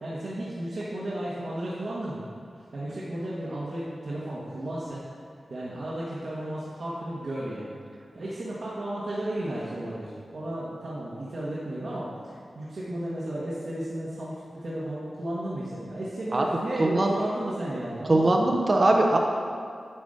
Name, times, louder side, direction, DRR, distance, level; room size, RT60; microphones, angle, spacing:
voice 1, 0.0-2.2 2.7-5.0 5.5-7.7 8.1-14.3 14.6-18.4, right 1 dB, 60° right, -8 dB, 1.5 m, -33 dB
voice 2, 18.1-19.2, right 2 dB, 35° right, 1 dB, 0.8 m, -21 dB
9.6 x 5.1 x 6.6 m, 2.3 s
wide cardioid pair, 120°, 0 cm